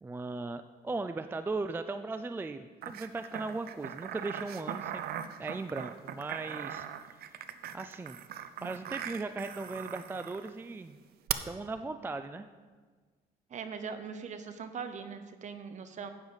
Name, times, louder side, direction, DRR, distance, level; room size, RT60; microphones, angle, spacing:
voice 1, 0.0-5.0 5.4-6.9 7.2-7.3 7.7-8.2 8.6-11.0 11.4-12.5, right 3 dB, 15° right, 10 dB, 0.3 m, -37 dB
sound 1, 2.8-10.5 11.3-11.4, right 10 dB, 65° right, 0.6 m, -40 dB
voice 2, 13.5-16.1, right 6 dB, 45° right, 9 dB, 1.0 m, -41 dB
12.5 x 8.8 x 4.0 m, 1.5 s
cardioid pair, 110°, 17 cm